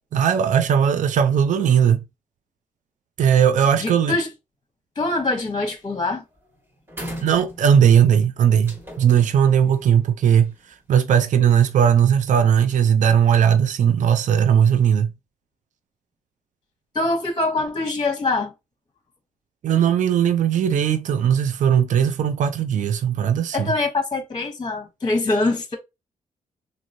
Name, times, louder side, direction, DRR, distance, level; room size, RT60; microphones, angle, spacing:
voice 1, 0.1-2.0 3.2-4.2 7.2-10.5 10.9-15.1 19.6-23.7, right 8 dB, 60° right, 0.4 m, -18 dB
voice 2, 3.8-4.3 5.0-6.2 16.9-18.5 23.5-25.8, left 2 dB, 30° left, 0.9 m, -24 dB
sound 1, 5.2-5.5 5.8-6.1 6.4-6.5 6.9-8.0 8.6-10.7, equal, 15° right, 1.3 m, -38 dB
3.0 x 2.6 x 2.6 m
cardioid pair, 60°, 15 cm